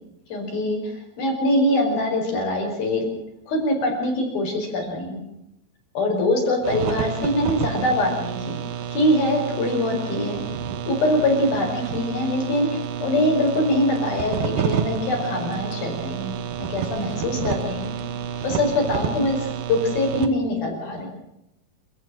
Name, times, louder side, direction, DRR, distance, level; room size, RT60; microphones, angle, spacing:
voice 1, 0.3-3.1 3.5-5.2 5.9-8.6 8.9-10.4 10.9-16.3 16.6-17.9 18.4-21.1, left 1 dB, 70° left, 2 dB, 6.7 m, -23 dB
sound 1, 6.6-20.3, right 8 dB, 65° right, 2.6 m, -29 dB
30.0 x 14.0 x 7.6 m, 0.86 s
omnidirectional pair, 4.4 m